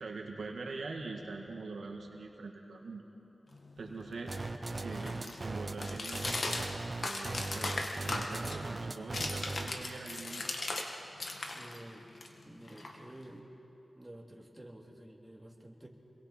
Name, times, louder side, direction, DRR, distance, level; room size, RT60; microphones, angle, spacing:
voice 1, 0.0-3.0 3.8-4.3 4.7-6.3 7.0-10.5, right 3 dB, 85° right, 1 dB, 1.7 m, -43 dB
sound 1, 3.5-10.9 11.2-13.4, left 2 dB, 60° left, 1.8 m, -39 dB
sound 2, 4.3-9.8, right 2 dB, 45° right, 0.9 m, -38 dB
voice 2, 11.5-12.0 12.4-13.5 13.9-15.9, right 1 dB, 15° right, -2 dB, 2.9 m, -50 dB
27.0 x 22.0 x 4.4 m, 2.9 s
cardioid pair, 60°, 0 cm